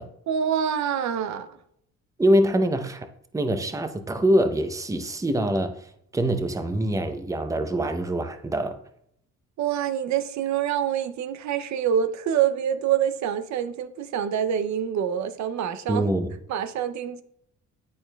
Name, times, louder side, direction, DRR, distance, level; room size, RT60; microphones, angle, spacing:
voice 1, 0.3-1.6 9.6-16.1 16.5-17.2, right 9 dB, 65° right, 0.5 m, -26 dB
voice 2, 2.2-3.1 3.3-8.8 15.9-16.3, right 1 dB, 10° right, 0.6 m, -24 dB
11.0 x 4.4 x 2.2 m
cardioid pair, 90°, 30 cm